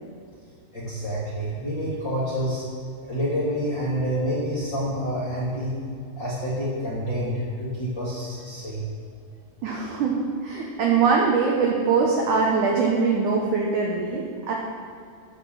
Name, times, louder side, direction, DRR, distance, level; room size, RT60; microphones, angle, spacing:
voice 1, 0.7-2.6 3.1-5.8 6.2-8.9, equal, 40° left, -8 dB, 1.9 m, -28 dB
voice 2, 9.6-14.5, right 5 dB, 75° right, -2 dB, 1.8 m, -22 dB
10.0 x 5.9 x 7.1 m, 2.3 s
omnidirectional pair, 4.8 m